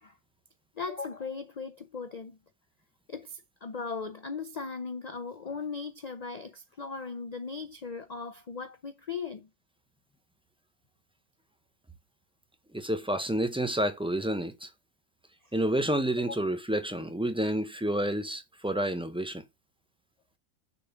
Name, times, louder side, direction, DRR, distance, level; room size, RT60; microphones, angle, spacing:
voice 1, 0.8-2.4 3.1-9.5, left 4 dB, 45° left, 0.6 m, -38 dB
voice 2, 12.7-14.7 15.5-19.4, right 1 dB, 5° right, 0.4 m, -29 dB
6.8 x 3.8 x 5.7 m
omnidirectional pair, 1.4 m